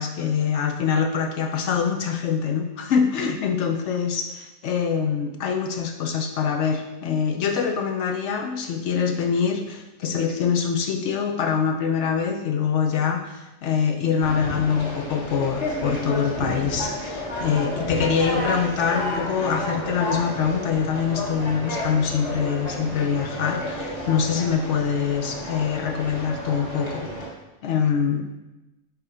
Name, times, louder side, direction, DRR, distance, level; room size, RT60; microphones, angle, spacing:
voice 1, 0.0-27.1 27.6-28.2, left 6 dB, 65° left, 4 dB, 0.8 m, -24 dB
Conversation, 14.2-27.3, left 1 dB, 30° left, 1.5 m, -31 dB
4.8 x 4.5 x 4.9 m, 1.0 s
omnidirectional pair, 1.4 m